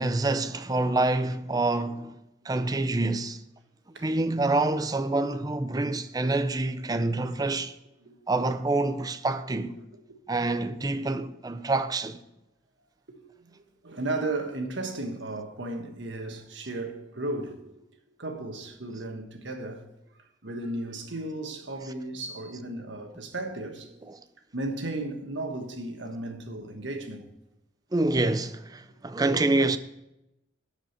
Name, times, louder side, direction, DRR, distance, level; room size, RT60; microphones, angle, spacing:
voice 1, 0.0-2.1 2.4-3.4 4.0-7.8 8.3-9.8 10.3-12.2 27.9-29.8, right 2 dB, 20° right, 0.5 m, -26 dB
voice 2, 9.7-10.2 13.1-17.8 18.2-19.9 20.4-24.1 24.5-27.2 28.9-29.0, right 2 dB, 70° right, 1.4 m, -35 dB
12.5 x 5.1 x 6.6 m
head